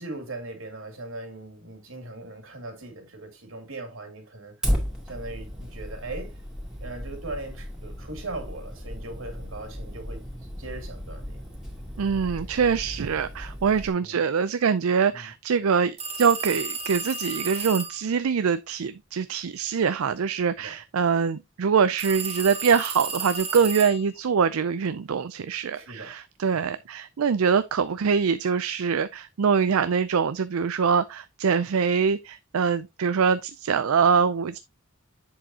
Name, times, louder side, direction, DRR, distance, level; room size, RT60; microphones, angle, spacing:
voice 1, 0.0-4.7 5.1-6.4 6.8-10.3 10.6-11.4 14.0-14.2 15.1-15.3 20.6-20.8 25.7-26.1 26.5-26.7, right 2 dB, 70° right, 2.6 m, -39 dB
Fire, 4.6-13.9, equal, 5° right, 2.3 m, -34 dB
voice 2, 12.0-34.6, right 6 dB, 85° right, 0.5 m, -24 dB
sound 1, 16.0-18.1 22.0-24.2, right 4 dB, 30° right, 1.8 m, -33 dB
7.9 x 6.7 x 2.8 m
head